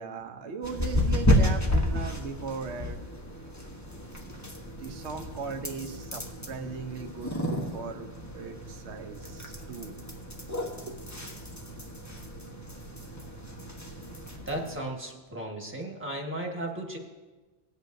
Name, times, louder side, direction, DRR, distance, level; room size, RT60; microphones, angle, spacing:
voice 1, 0.0-3.0 4.8-8.1 8.3-9.9 10.5-11.0, right 5 dB, 85° right, 6 dB, 1.1 m, -38 dB
sound 1, 0.6-14.8, left 1 dB, 15° left, 1.0 m, -31 dB
voice 2, 14.4-17.0, right 1 dB, 10° right, -1 dB, 1.5 m, -35 dB
18.5 x 8.2 x 2.6 m, 1.3 s
omnidirectional pair, 1.1 m